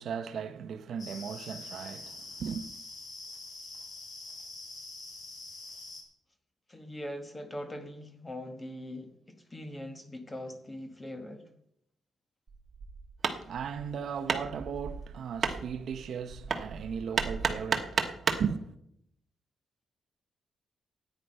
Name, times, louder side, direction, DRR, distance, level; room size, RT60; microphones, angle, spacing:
voice 1, 0.0-2.7 13.3-18.6, right 7 dB, 60° right, 0.8 m, -37 dB
sound 1, 1.0-6.0, left 2 dB, 50° left, 3.3 m, -45 dB
voice 2, 6.7-11.5, left 1 dB, 15° left, 1.3 m, -41 dB
Hammer, 12.5-18.5, right 5 dB, 35° right, 1.2 m, -33 dB
13.5 x 9.4 x 5.4 m
wide cardioid pair, 160°, 0 cm